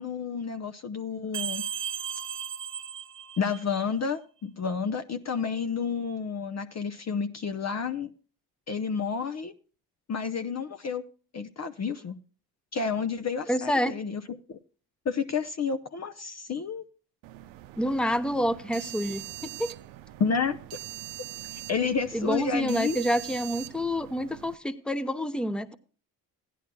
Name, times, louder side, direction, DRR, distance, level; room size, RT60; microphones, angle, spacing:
voice 1, 0.0-1.6 3.4-8.1 8.7-9.5 10.1-11.0 11.3-12.2 12.7-14.2 14.5-14.6 15.0-16.8 20.2-20.6 21.7-23.0, left 5 dB, 35° left, 8 dB, 0.7 m, -30 dB
sound 1, 1.3-3.9, right 8 dB, 30° right, 0.6 m, -35 dB
voice 2, 13.5-13.9 17.8-19.7 22.1-25.7, equal, ahead, 11 dB, 0.9 m, -28 dB
sound 2, 17.2-24.6, right 16 dB, 85° right, 0.7 m, -43 dB
16.0 x 11.0 x 2.2 m, 0.39 s
supercardioid pair, 60°, 45 cm